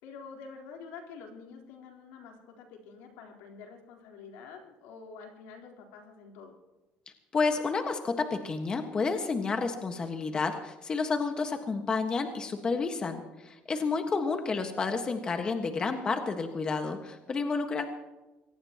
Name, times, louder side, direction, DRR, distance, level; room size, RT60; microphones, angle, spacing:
voice 1, 0.0-6.6 14.0-14.2, left 5 dB, 90° left, 1 dB, 3.9 m, -47 dB
voice 2, 7.3-17.8, left 4 dB, 25° left, 5 dB, 1.5 m, -30 dB
24.5 x 18.5 x 3.0 m, 1.1 s
cardioid pair, 135°, 3 cm